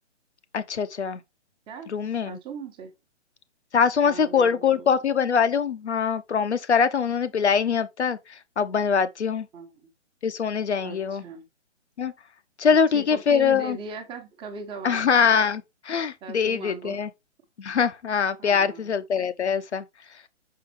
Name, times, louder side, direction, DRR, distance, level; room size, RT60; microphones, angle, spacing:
voice 1, 0.5-1.2 1.9-2.4 3.7-8.2 8.6-9.5 10.2-11.2 12.0-12.1 12.6-13.8 14.8-17.1 17.6-19.8, left 6 dB, 65° left, 0.9 m, -23 dB
voice 2, 1.7-2.9 4.0-5.0 9.5-9.9 10.8-11.5 12.7-15.1 16.2-17.0 18.4-18.9, right 5 dB, 15° right, 1.2 m, -39 dB
6.0 x 5.8 x 3.2 m
figure-of-eight pair, 135°, 36 cm